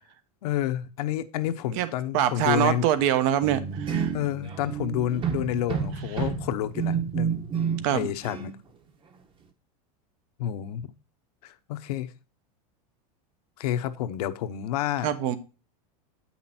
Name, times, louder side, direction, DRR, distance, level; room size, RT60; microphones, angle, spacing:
voice 1, 0.4-2.9 4.1-7.4 7.9-8.5 10.4-10.9 11.4-12.1 13.6-15.1, left 11 dB, 75° left, 0.9 m, -29 dB
voice 2, 2.1-4.1 7.8-8.1 15.0-15.4, right 10 dB, 55° right, 1.1 m, -24 dB
sound 1, 3.4-8.0 8.2-8.6, right 7 dB, 25° right, 1.1 m, -30 dB
8.5 x 5.9 x 4.3 m
supercardioid pair, 140°, 20 cm